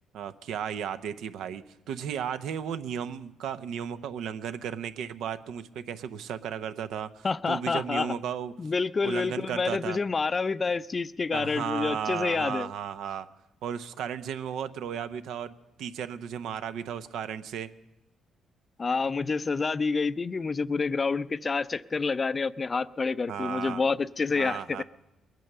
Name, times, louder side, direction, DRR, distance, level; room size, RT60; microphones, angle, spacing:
voice 1, 0.1-8.5 9.0-10.0 10.6-10.7 11.3-13.3 13.6-15.5 15.8-17.7 23.3-23.8 24.3-24.8, right 8 dB, 80° right, 11 dB, 0.7 m, -34 dB
voice 2, 7.2-8.1 8.6-12.7 18.8-24.8, left 4 dB, 35° left, 17 dB, 0.4 m, -28 dB
20.5 x 9.2 x 6.6 m, 0.95 s
cardioid pair, 90°, 0 cm